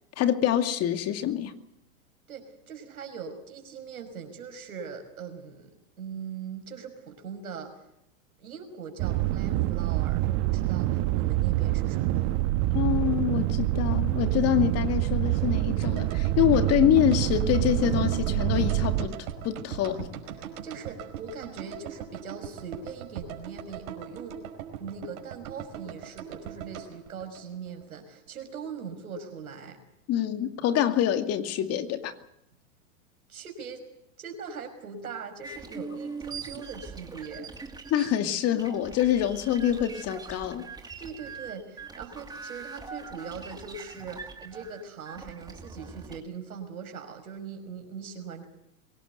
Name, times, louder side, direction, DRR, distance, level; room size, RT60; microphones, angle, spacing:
voice 1, 0.2-1.5 12.7-19.2 19.4-20.1 30.1-32.1 37.9-40.7, left 11 dB, 35° left, 2.4 m, -25 dB
voice 2, 2.3-7.8 8.4-12.4 19.9-20.1 20.6-24.5 24.8-29.8 33.3-33.8 34.2-37.5 41.0-48.5, right 6 dB, 85° right, 5.9 m, -41 dB
sound 1, 9.0-19.1, right 16 dB, 40° right, 1.5 m, -26 dB
sound 2, 15.8-28.0 28.3-28.4, right 9 dB, 60° right, 5.2 m, -41 dB
sound 3, 35.4-46.2, right 4 dB, 10° right, 2.6 m, -42 dB
23.5 x 18.5 x 8.1 m
hypercardioid pair, 115°, 42 cm